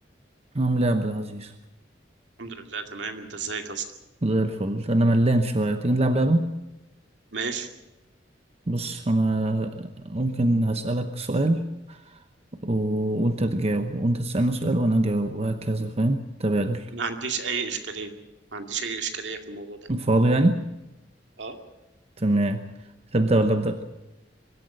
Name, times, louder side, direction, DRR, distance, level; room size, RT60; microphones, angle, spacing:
voice 1, 0.5-1.5 4.2-6.5 8.7-11.6 11.9-12.2 12.6-16.9 19.9-20.6 22.2-22.6 23.1-23.8, right 1 dB, 35° right, 8 dB, 1.0 m, -23 dB
voice 2, 2.4-3.8 7.3-7.7 16.9-18.1 18.5-19.8 21.4-21.6, right 5 dB, 70° right, 5 dB, 2.4 m, -32 dB
23.5 x 13.0 x 9.1 m, 0.95 s
head